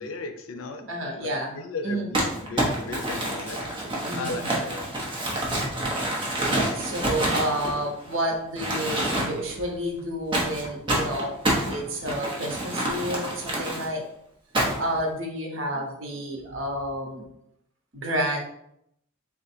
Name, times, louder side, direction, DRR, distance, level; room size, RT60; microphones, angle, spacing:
voice 1, 0.0-0.9 1.2-3.6 4.2-4.9, left 3 dB, 85° left, 7 dB, 0.5 m, -36 dB
voice 2, 0.9-2.1 4.0-4.6 6.7-11.3 11.7-14.0 14.8-17.2 17.9-18.4, right 1 dB, 70° right, 1 dB, 0.9 m, -30 dB
Crumpling crinkling, 2.1-8.2 8.6-9.5 10.3-13.9 14.5-15.0, right 1 dB, 25° right, 0.9 m, -27 dB
3.7 x 2.3 x 4.3 m, 0.76 s
head